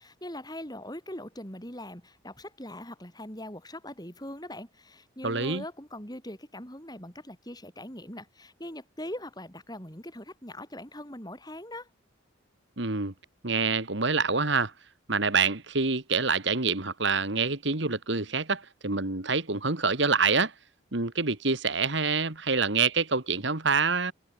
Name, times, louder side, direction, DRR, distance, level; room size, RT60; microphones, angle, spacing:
voice 1, 0.0-11.9, left 1 dB, 20° left, 8.0 m, -41 dB
voice 2, 5.2-5.6 12.8-13.1 13.4-14.7 15.1-20.5 20.9-24.1, right 4 dB, 60° right, 2.0 m, -26 dB
head